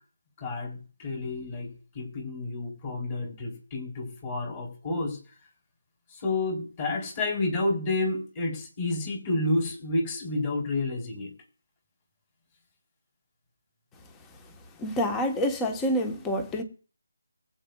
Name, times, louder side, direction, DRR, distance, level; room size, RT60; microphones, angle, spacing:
voice 1, 0.4-5.2 6.1-11.3, left 2 dB, 25° left, 3.8 m, -30 dB
voice 2, 14.8-16.6, equal, 10° left, 1.2 m, -27 dB
22.5 x 8.0 x 2.4 m
figure-of-eight pair, 165°, 0 cm